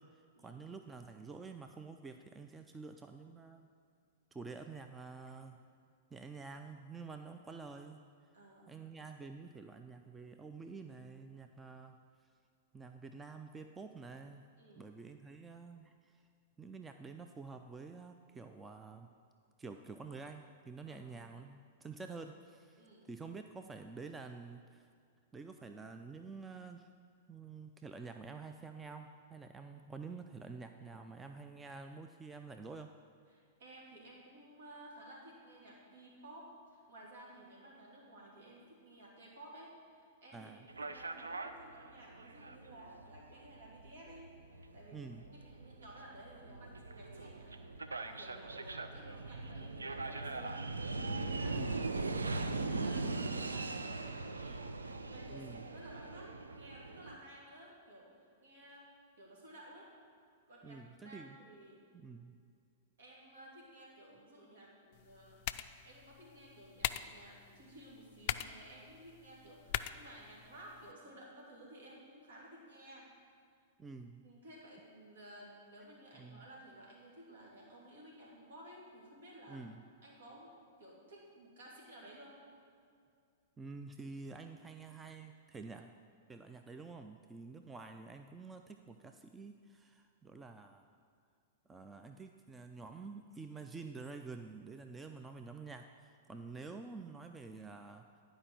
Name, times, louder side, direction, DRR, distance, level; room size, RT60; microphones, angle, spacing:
voice 1, 0.0-3.7 4.3-5.6 6.1-8.0 8.7-12.0 12.7-14.4 14.8-16.2 16.6-19.1 19.6-24.9 25.3-26.9 27.3-32.9 40.3-40.7 44.9-45.2 51.5-51.8 55.3-55.6 60.6-61.4 61.9-62.4 73.8-74.3 76.2-76.5 79.5-79.8 83.6-85.9 86.3-91.0 91.7-98.2, right 4 dB, 15° right, 6 dB, 0.4 m, -49 dB
voice 2, 8.3-8.8 14.6-14.8 20.8-21.1 22.8-23.1 33.3-59.9 60.5-61.9 63.0-73.1 74.2-79.6 80.0-82.4, right 1 dB, 70° right, -3 dB, 2.8 m, -55 dB
sound 1, 40.7-57.2, right 3 dB, 85° right, 0.5 m, -40 dB
sound 2, 64.9-70.9, left 13 dB, 50° left, 0.3 m, -43 dB
11.0 x 5.1 x 6.2 m, 2.3 s
figure-of-eight pair, 105°, 0 cm